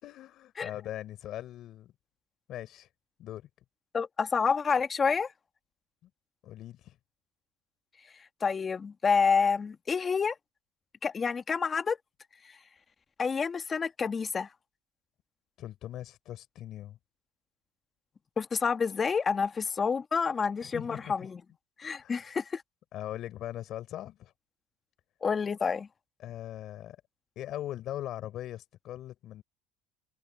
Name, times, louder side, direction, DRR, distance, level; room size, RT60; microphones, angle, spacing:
voice 1, 0.0-1.9 2.5-2.9 3.2-3.5 6.4-7.0 15.6-17.0 20.6-21.1 22.0-22.3 22.9-24.3 26.2-27.0 27.3-29.4, left 13 dB, 55° left, 4.8 m, -40 dB
voice 2, 3.9-5.3 8.4-10.3 11.0-12.0 13.2-14.5 18.4-21.4 21.8-22.6 25.2-25.9, left 5 dB, 25° left, 1.6 m, -28 dB
supercardioid pair, 105°, 0 cm